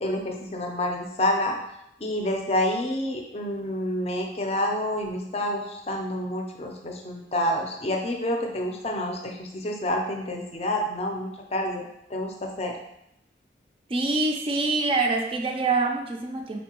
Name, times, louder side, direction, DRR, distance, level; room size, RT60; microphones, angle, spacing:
voice 1, 0.0-1.5 2.0-12.7, left 1 dB, 35° left, 2 dB, 0.5 m, -28 dB
voice 2, 13.9-16.6, right 3 dB, 30° right, 3 dB, 0.4 m, -25 dB
4.4 x 2.7 x 2.8 m, 0.82 s
head